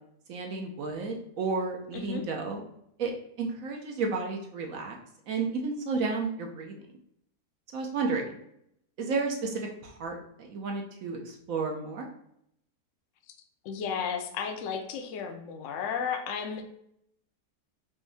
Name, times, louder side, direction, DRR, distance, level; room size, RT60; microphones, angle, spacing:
voice 1, 0.3-2.6 3.0-3.1 3.4-5.0 5.3-6.7 7.7-8.2 9.0-12.1, right 4 dB, 65° right, 2 dB, 1.0 m, -32 dB
voice 2, 1.9-2.2 13.3-13.4 13.6-16.7, left 6 dB, 65° left, 5 dB, 0.8 m, -33 dB
5.2 x 2.6 x 3.3 m, 0.74 s
omnidirectional pair, 1.7 m